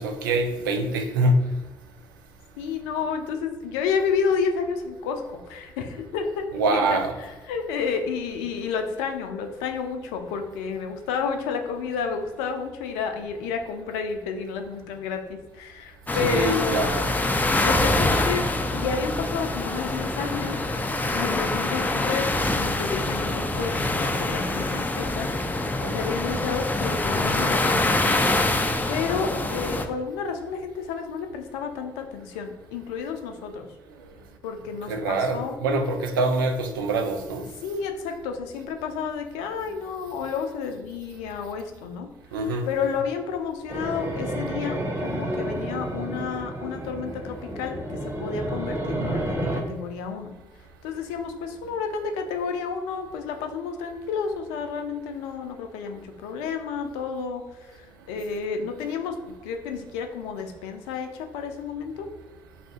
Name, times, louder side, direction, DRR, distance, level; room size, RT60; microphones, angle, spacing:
voice 1, 0.0-1.4 6.5-7.1 16.2-17.1 25.8-26.1 29.1-29.4 34.9-37.5 42.3-42.6, right 2 dB, 85° right, 6 dB, 0.4 m, -25 dB
voice 2, 2.6-6.9 7.2-16.8 17.3-18.4 18.7-20.6 21.1-28.2 28.9-33.7 34.4-35.5 37.6-42.1 42.7-50.3 50.8-59.2 59.4-62.1, left 6 dB, 75° left, 5 dB, 0.4 m, -31 dB
sound 1, 16.1-29.9, left 2 dB, 15° left, 0.4 m, -25 dB
sound 2, 43.7-49.6, right 1 dB, 25° right, 0.8 m, -30 dB
2.7 x 2.5 x 3.6 m, 1.1 s
hypercardioid pair, 45°, 11 cm